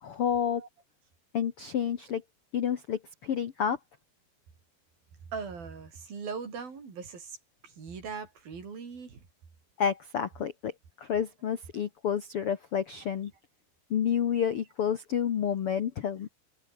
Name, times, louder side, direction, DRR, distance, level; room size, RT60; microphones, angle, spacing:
voice 1, 0.0-0.6 1.3-2.2 2.5-3.8 9.8-10.7 11.0-13.3 13.9-16.3, left 8 dB, 60° left, 1.5 m, -29 dB
voice 2, 5.3-7.4 7.6-9.2, right 5 dB, 70° right, 6.9 m, -40 dB
omnidirectional pair, 4.4 m